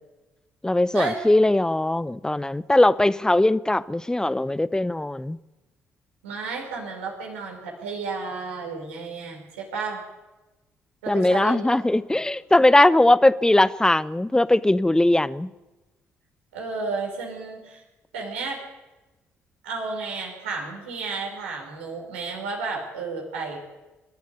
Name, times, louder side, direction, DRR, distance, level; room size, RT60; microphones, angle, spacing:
voice 1, 0.6-5.4 11.1-15.5, left 1 dB, 10° left, 0.8 m, -20 dB
voice 2, 6.2-10.0 11.0-11.6 12.1-12.2 16.5-17.8 18.1-18.6 19.6-23.7, right 4 dB, 75° right, 5.2 m, -32 dB
25.5 x 13.0 x 9.8 m
figure-of-eight pair, 40°, 7 cm